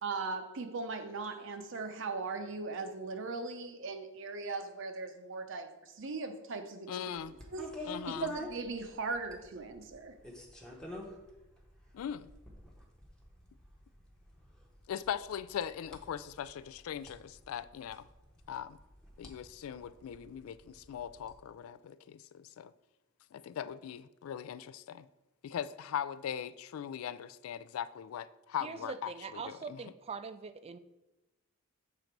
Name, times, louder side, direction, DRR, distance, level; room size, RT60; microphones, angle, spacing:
voice 1, 0.0-7.2 7.5-10.1, right 4 dB, 60° right, 0.7 m, -39 dB
voice 2, 6.9-7.3 7.8-8.3 11.9-12.3 14.9-18.1 18.5-18.8 19.2-22.7 23.3-25.1 25.4-29.9, left 9 dB, 75° left, 0.3 m, -40 dB
sound 1, 7.2-21.3, left 1 dB, 5° left, 0.8 m, -50 dB
voice 3, 29.4-30.8, right 5 dB, 30° right, 0.3 m, -42 dB
6.8 x 3.8 x 4.5 m
head